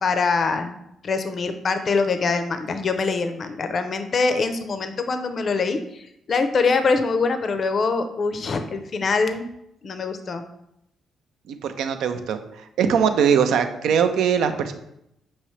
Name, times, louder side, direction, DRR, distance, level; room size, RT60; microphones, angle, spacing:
voice 1, 0.0-0.8 1.0-9.5 9.8-10.4, left 4 dB, 50° left, 8 dB, 0.4 m, -24 dB
voice 2, 11.5-14.7, right 7 dB, 75° right, 8 dB, 0.4 m, -21 dB
5.5 x 2.8 x 3.1 m, 0.80 s
supercardioid pair, 55°, 0 cm